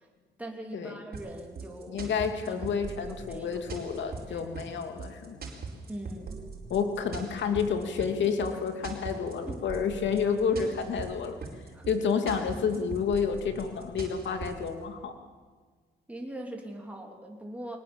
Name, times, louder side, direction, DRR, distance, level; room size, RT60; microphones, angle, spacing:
voice 1, 0.4-2.0 2.5-2.6 3.1-3.6 4.2-4.5 5.9-6.4 9.5-9.6 11.7-11.8 16.1-17.8, right 1 dB, 5° right, 0 dB, 3.2 m, -41 dB
sound 1, 1.1-14.7, right 4 dB, 50° right, 4.8 m, -41 dB
voice 2, 1.9-5.4 6.7-11.3 11.9-15.1, left 6 dB, 65° left, 6 dB, 2.7 m, -30 dB
23.0 x 19.0 x 7.2 m, 1.5 s
cardioid pair, 90°, 20 cm